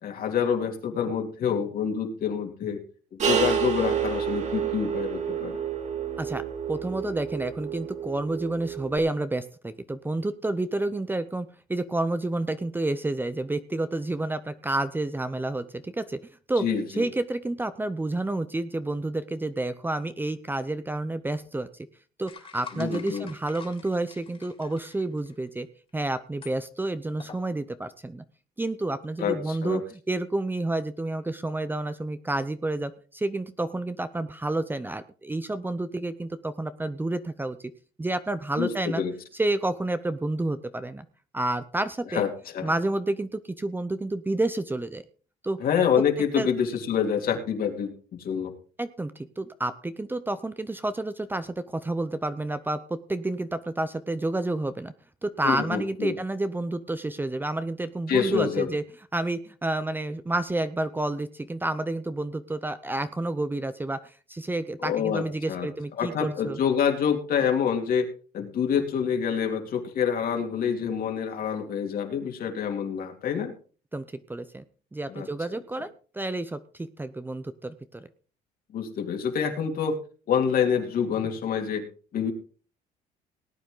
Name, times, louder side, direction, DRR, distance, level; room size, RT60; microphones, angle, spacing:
voice 1, 0.0-2.8 3.1-5.6 16.6-17.0 22.7-23.3 29.2-29.8 38.6-39.1 42.1-42.3 42.5-42.7 45.6-48.5 55.4-56.2 58.1-58.7 64.8-65.7 66.0-68.1 68.3-73.5 75.1-75.3 78.7-80.0 80.3-81.9 82.1-82.3, left 7 dB, 60° left, 3 dB, 2.9 m, -27 dB
sound 1, 3.2-9.0, right 8 dB, 45° right, 2.8 m, -29 dB
voice 2, 6.7-16.2 16.5-16.6 16.9-21.7 22.2-25.7 25.9-28.2 28.6-37.6 38.0-39.0 39.3-41.0 41.3-42.2 42.6-45.0 45.4-45.6 46.4-46.5 48.8-54.9 55.2-58.8 59.1-66.6 73.9-74.6 74.9-78.1, right 2 dB, 10° right, 12 dB, 0.7 m, -30 dB
sound 2, 22.3-25.5 26.4-26.6 27.2-27.5, left 5 dB, 35° left, 2.8 m, -46 dB
18.5 x 9.2 x 3.9 m, 0.38 s
cardioid pair, 110°, 17 cm